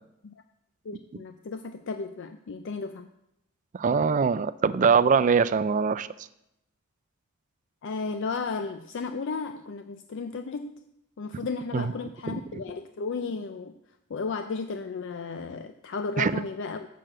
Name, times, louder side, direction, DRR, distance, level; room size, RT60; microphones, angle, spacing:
voice 1, 0.9-3.1 7.8-10.8 11.2-13.7 14.1-16.9, left 4 dB, 60° left, 8 dB, 0.4 m, -34 dB
voice 2, 3.7-6.1 11.7-11.9 12.3-12.4 16.2-16.3, right 5 dB, 35° right, 15 dB, 0.3 m, -22 dB
6.7 x 6.4 x 7.4 m, 0.82 s
head